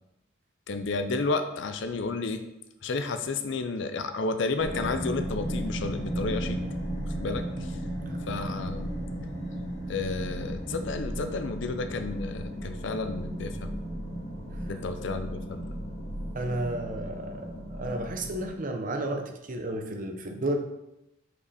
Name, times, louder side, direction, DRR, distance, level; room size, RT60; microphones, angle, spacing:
voice 1, 0.7-2.4 2.8-6.6 7.1-7.8 8.3-9.0 9.9-13.7 14.7-15.7, left 3 dB, 60° left, 8 dB, 0.5 m, -31 dB
sound 1, 4.6-18.5, right 1 dB, 35° left, 2.0 m, -35 dB
voice 2, 16.3-20.6, right 1 dB, 40° right, 4 dB, 0.7 m, -32 dB
5.4 x 5.3 x 4.1 m, 0.88 s
head